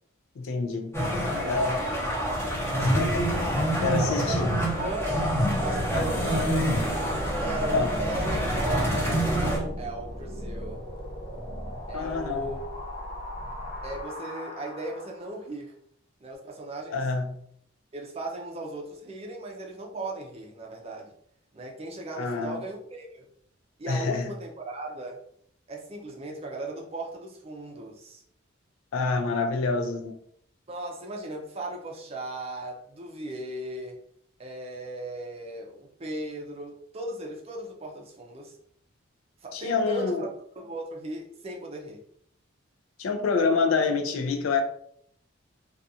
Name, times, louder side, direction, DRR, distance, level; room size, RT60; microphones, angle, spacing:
voice 1, 0.4-0.9 1.2-1.8 2.8-4.5 5.9-6.1 7.7-7.9 11.9-12.5 16.9-17.3 22.2-22.6 23.9-24.3 28.9-30.1 39.5-40.3 43.0-44.6, left 4 dB, 80° left, 0.4 m, -27 dB
sound 1, 0.9-9.6, equal, 15° left, 0.7 m, -27 dB
voice 2, 1.6-2.9 3.6-5.1 5.6-6.5 7.4-10.8 11.9-12.7 13.8-15.7 16.2-17.1 17.9-21.1 21.5-23.3 23.8-25.2 25.7-28.2 30.7-34.0 34.4-38.6 39.4-40.3 40.6-42.0, right 2 dB, 30° right, 0.5 m, -37 dB
sound 2, 4.4-15.4, equal, 55° left, 0.7 m, -37 dB
2.4 x 2.3 x 2.7 m
head